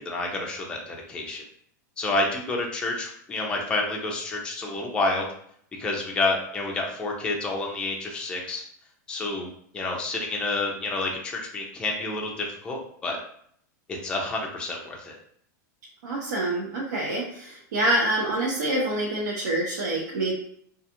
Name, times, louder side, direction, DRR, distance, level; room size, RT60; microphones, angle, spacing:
voice 1, 0.0-1.4 2.0-5.3 5.8-8.6 9.1-9.5 9.7-13.2 14.0-15.2, left 2 dB, 10° left, -1 dB, 0.4 m, -29 dB
voice 2, 16.0-20.3, right 1 dB, 70° right, -5 dB, 0.7 m, -26 dB
2.4 x 2.3 x 2.8 m, 0.65 s
supercardioid pair, 165°, 10 cm